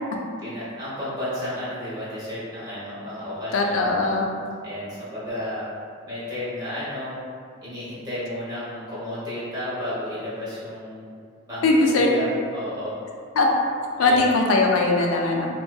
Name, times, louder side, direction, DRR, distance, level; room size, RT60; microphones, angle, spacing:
voice 1, 0.4-3.8 4.6-5.7 6.1-7.2 7.6-11.0 11.5-13.0 14.0-14.3, left 1 dB, 20° right, -11 dB, 0.8 m, -32 dB
voice 2, 3.5-4.3 11.6-12.1 13.4-13.5 14.0-15.5, left 3 dB, 80° left, 0 dB, 0.3 m, -20 dB
2.6 x 2.2 x 2.2 m, 2.2 s
head